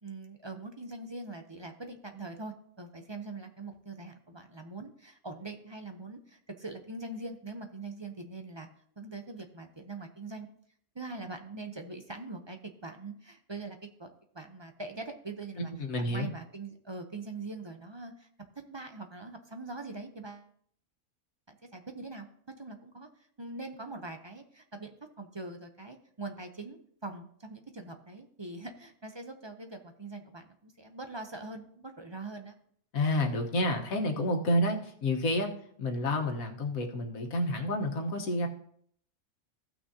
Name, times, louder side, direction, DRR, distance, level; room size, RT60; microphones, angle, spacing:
voice 1, 0.0-8.7 9.0-10.5 10.9-14.1 14.3-15.7 16.0-18.3 18.7-20.5 21.5-22.3 22.6-23.1 23.4-32.5, right 3 dB, 30° right, 5 dB, 0.6 m, -43 dB
voice 2, 15.8-16.3 32.9-35.5 35.8-38.5, left 1 dB, 85° left, 3 dB, 1.7 m, -29 dB
16.0 x 6.2 x 2.8 m, 0.64 s
omnidirectional pair, 1.4 m